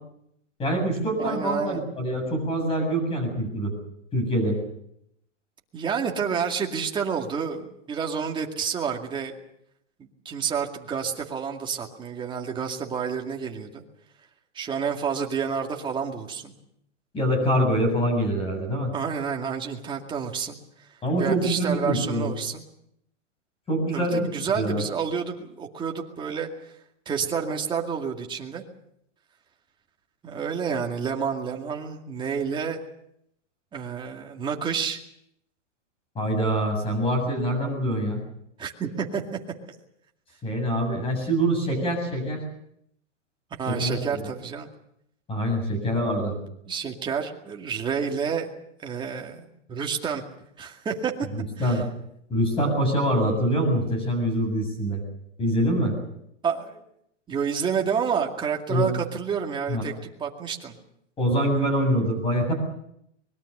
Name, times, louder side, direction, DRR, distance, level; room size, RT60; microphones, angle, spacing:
voice 1, 0.6-3.7 4.1-4.6 17.1-18.9 21.0-22.3 23.7-24.2 24.5-24.8 36.1-38.2 40.4-42.4 43.7-44.0 45.3-46.4 51.3-51.9 52.3-55.0 55.4-56.0 58.7-58.9 59.7-59.8 61.2-62.5, equal, 15° left, 4 dB, 7.5 m, -24 dB
voice 2, 1.2-1.8 5.7-9.3 10.0-13.8 14.5-16.5 18.9-20.6 21.2-22.6 23.9-26.7 27.1-28.6 30.2-32.8 33.7-35.0 38.6-39.2 43.6-44.7 46.7-48.5 48.8-50.2 50.6-51.1 51.6-51.8 56.4-56.8 57.3-59.9 60.2-60.8, right 6 dB, 15° right, 2 dB, 2.2 m, -29 dB
24.5 x 21.5 x 6.7 m, 0.75 s
hypercardioid pair, 155°, 37 cm